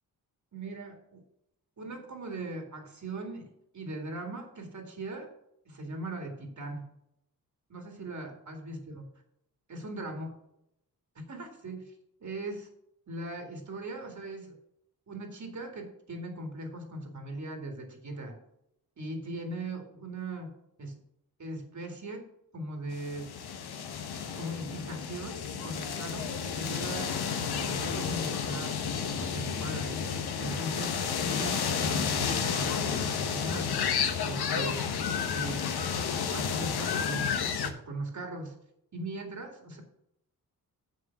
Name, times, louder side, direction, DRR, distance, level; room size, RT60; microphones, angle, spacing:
voice 1, 0.5-1.2 1.8-5.3 5.7-6.9 7.7-9.0 9.7-10.3 11.2-12.0 12.2-12.7 13.1-14.6 15.1-18.4 19.0-21.0 21.4-22.2 22.5-23.3 24.4-27.2 27.4-28.8 29.2-30.0 30.4-33.7 34.2-34.8 35.2-35.6 36.3-38.6 38.9-39.8, right 2 dB, 50° right, 3 dB, 2.2 m, -39 dB
sound 1, 22.9-37.7, left 6 dB, 80° left, 1.1 m, -31 dB
7.2 x 6.6 x 5.9 m, 0.77 s
wide cardioid pair, 115°, 38 cm